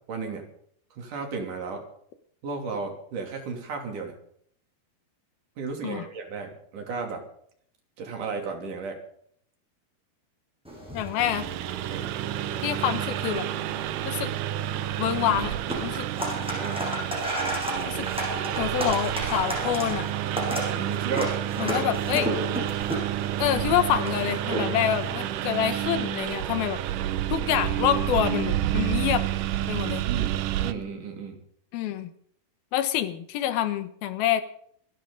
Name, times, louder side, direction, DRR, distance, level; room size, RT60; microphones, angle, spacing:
voice 1, 0.1-0.4 0.9-1.8 2.4-4.1 5.6-7.2 8.0-9.0 11.9-12.1 16.3-16.9 20.7-21.4 21.7-21.8 25.2-25.5 26.9-27.0 30.0-31.4, right 5 dB, 55° right, 3 dB, 4.4 m, -34 dB
sound 1, 10.6-25.1, equal, ahead, 7.3 m, -34 dB
voice 2, 10.9-11.5 12.6-13.5 14.0-14.3 15.0-15.5 15.8-16.1 17.9-18.1 18.6-20.1 21.6-22.3 23.4-26.8 27.3-29.3 29.7-30.0 31.7-32.1 32.7-34.4, left 11 dB, 75° left, 11 dB, 3.0 m, -26 dB
Engine, 11.2-30.7, right 12 dB, 75° right, 2.0 m, -29 dB
27.0 x 12.5 x 3.9 m, 0.64 s
omnidirectional pair, 4.5 m